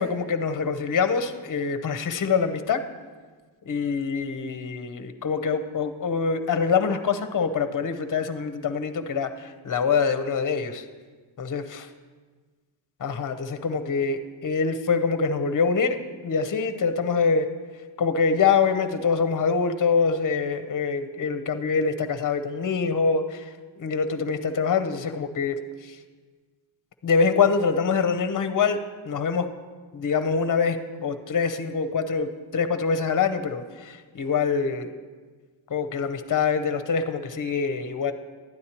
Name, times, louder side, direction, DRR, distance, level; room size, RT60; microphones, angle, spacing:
voice 1, 0.0-2.8 3.7-10.9 11.4-11.8 13.0-17.5 18.0-26.0 27.0-28.8 29.0-29.5 29.9-34.9 35.7-38.1, left 5 dB, 45° left, 9 dB, 0.7 m, -25 dB
12.0 x 9.4 x 2.9 m, 1.4 s
cardioid pair, 70°, 47 cm